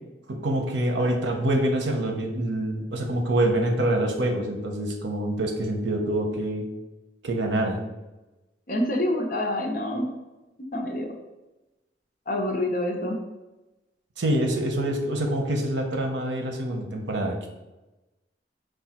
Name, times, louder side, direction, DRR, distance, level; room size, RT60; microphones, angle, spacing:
voice 1, 0.3-6.7 7.2-7.8 14.2-17.5, right 1 dB, 80° right, 3 dB, 0.7 m, -26 dB
voice 2, 8.7-10.1 10.7-11.1 12.3-13.2, left 1 dB, 50° left, 2 dB, 0.6 m, -26 dB
4.8 x 2.3 x 4.2 m, 1.0 s
head